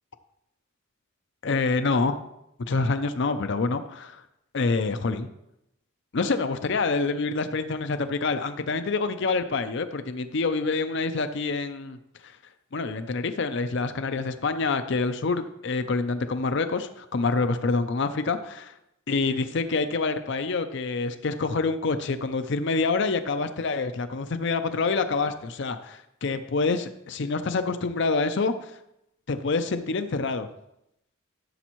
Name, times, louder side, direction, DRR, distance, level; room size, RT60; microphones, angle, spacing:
voice 1, 1.4-2.2 2.7-4.2 4.5-5.3 6.1-12.0 12.2-12.3 12.7-18.7 19.1-28.5 29.3-30.5, left 3 dB, 55° left, 10 dB, 0.5 m, -26 dB
14.0 x 7.1 x 3.0 m, 0.83 s
head